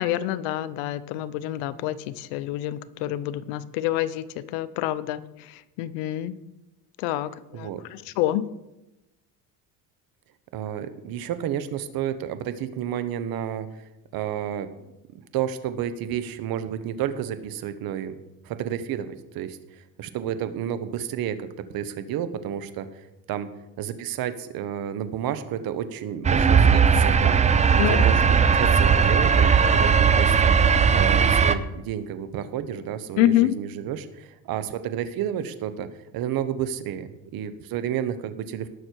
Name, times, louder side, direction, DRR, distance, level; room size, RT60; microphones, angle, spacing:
voice 1, 0.0-6.4 7.0-8.5 27.8-28.2 33.2-33.6, left 13 dB, 90° left, 15 dB, 0.8 m, -27 dB
voice 2, 10.5-14.9 15.3-18.1 18.4-21.5 21.7-23.5 23.8-35.9 36.1-38.7, right 10 dB, 60° right, 11 dB, 1.2 m, -31 dB
sound 1, 26.2-31.5, right 6 dB, 20° right, 0.5 m, -18 dB
19.0 x 6.4 x 4.7 m, 0.96 s
cardioid pair, 125°, 40 cm